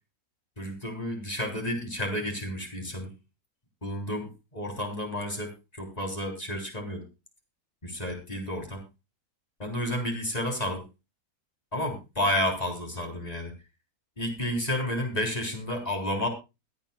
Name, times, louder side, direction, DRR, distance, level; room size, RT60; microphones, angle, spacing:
voice 1, 0.6-3.1 3.8-7.0 7.8-8.8 9.6-10.8 11.7-13.5 14.2-16.3, left 1 dB, 25° left, 2 dB, 3.7 m, -31 dB
22.5 x 8.9 x 2.3 m, 0.27 s
omnidirectional pair, 1.6 m